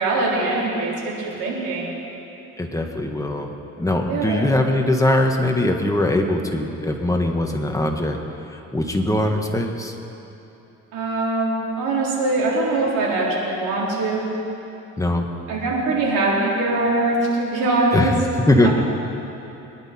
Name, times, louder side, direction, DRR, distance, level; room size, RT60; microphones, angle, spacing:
voice 1, 0.0-1.9 4.1-4.5 10.9-14.3 15.5-18.1 18.6-18.7, right 2 dB, 85° right, -5 dB, 3.8 m, -22 dB
voice 2, 2.6-3.5 3.8-8.2 8.7-9.9 15.0-15.3 17.9-18.1 18.5-18.7, left 1 dB, 10° left, 2 dB, 1.6 m, -21 dB
24.0 x 11.0 x 4.4 m, 2.9 s
cardioid pair, 90°, 30 cm